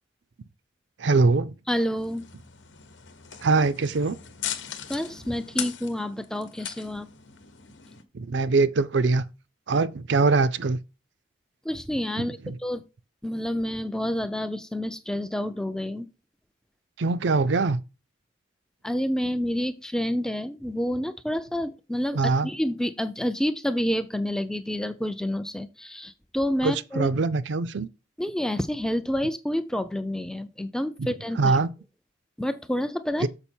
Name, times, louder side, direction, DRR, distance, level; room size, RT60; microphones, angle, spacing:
voice 1, 1.0-1.6 3.4-4.2 8.1-9.2 9.7-10.8 12.2-12.6 17.0-17.8 22.1-22.5 26.6-27.9 31.0-31.1 31.4-31.7 33.2-33.3, right 3 dB, 65° right, 0.5 m, -23 dB
voice 2, 1.7-2.2 4.9-7.1 11.6-12.8 13.2-16.1 18.8-27.1 28.2-31.6 32.4-33.3, equal, 5° left, 0.4 m, -28 dB
sound 1, 2.0-8.0, left 10 dB, 65° left, 1.0 m, -39 dB
6.9 x 5.2 x 4.4 m
head